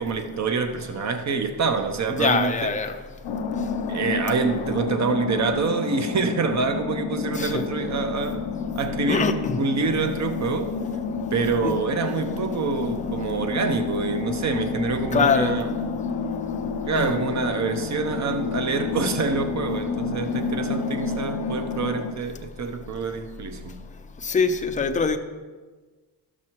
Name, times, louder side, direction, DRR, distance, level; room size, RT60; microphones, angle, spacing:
voice 1, 0.0-2.7 3.9-8.5 8.8-10.8 11.3-15.7 16.9-23.8, right 4 dB, 40° right, 0.8 m, -26 dB
voice 2, 2.1-2.9 7.4-7.6 9.1-9.6 11.6-11.7 15.1-15.5 17.0-17.1 24.3-25.2, left 5 dB, 20° left, 0.6 m, -23 dB
sound 1, 3.2-22.1, left 5 dB, 75° left, 0.8 m, -30 dB
12.5 x 6.2 x 3.0 m
cardioid pair, 90°, 42 cm